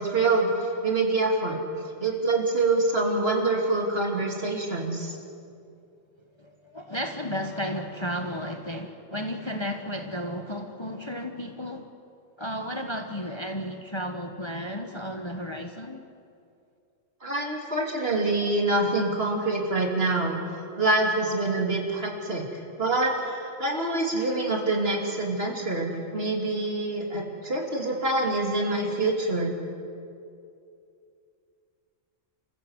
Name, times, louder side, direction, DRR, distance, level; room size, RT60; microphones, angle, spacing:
voice 1, 0.0-1.6 2.0-5.1 17.2-20.4 20.8-22.5 22.8-29.6, right 2 dB, 50° right, 1 dB, 3.1 m, -26 dB
voice 2, 6.4-11.9 12.4-16.0, equal, 25° left, 5 dB, 1.1 m, -33 dB
28.5 x 15.0 x 8.0 m, 2.5 s
omnidirectional pair, 1.3 m